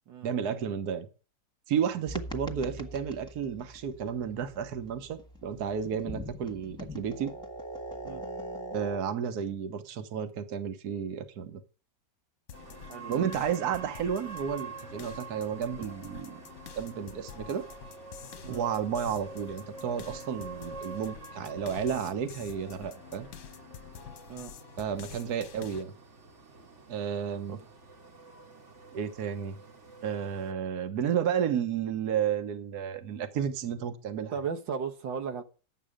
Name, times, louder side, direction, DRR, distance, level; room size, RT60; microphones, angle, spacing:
voice 1, 0.2-1.1 1.7-7.3 8.7-11.6 13.1-16.4 16.7-17.6 18.5-23.3 24.8-25.9 26.9-27.6 28.9-29.6 30.0-34.3, right 8 dB, 60° right, 1.6 m, -32 dB
sound 1, 2.1-9.0, equal, 5° left, 1.3 m, -42 dB
sound 2, 12.5-25.8, left 8 dB, 50° left, 1.0 m, -47 dB
sound 3, 12.5-30.5, right 4 dB, 45° right, 1.6 m, -48 dB
voice 2, 12.9-13.2 18.4-18.7 24.3-24.5 27.5-27.6 34.3-35.4, right 6 dB, 85° right, 2.0 m, -36 dB
11.5 x 8.3 x 5.0 m
omnidirectional pair, 1.9 m